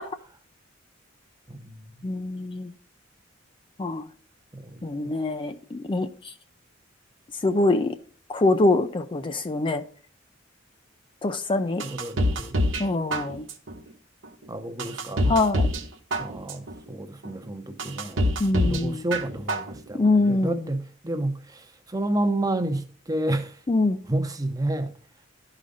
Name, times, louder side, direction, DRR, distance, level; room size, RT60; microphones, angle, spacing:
voice 1, 1.5-2.0 4.5-5.1 11.8-12.6 14.5-15.3 16.2-18.3 18.7-23.6 24.1-24.9, right 1 dB, 20° right, 0.7 m, -30 dB
voice 2, 2.0-2.7 3.8-4.0 4.8-6.1 7.4-7.9 8.3-9.8 11.2-11.8 12.8-13.4 15.3-15.7 18.4-19.0 19.9-20.6 23.7-24.0, left 2 dB, 25° left, 0.4 m, -24 dB
sound 1, 11.8-12.8 13.1-13.7 14.2-14.3 14.8-15.8 16.1-16.7 17.2-17.3 17.8-18.8 19.1-19.7 20.1-20.2, equal, 70° right, 1.0 m, -25 dB
12.0 x 4.9 x 3.9 m
head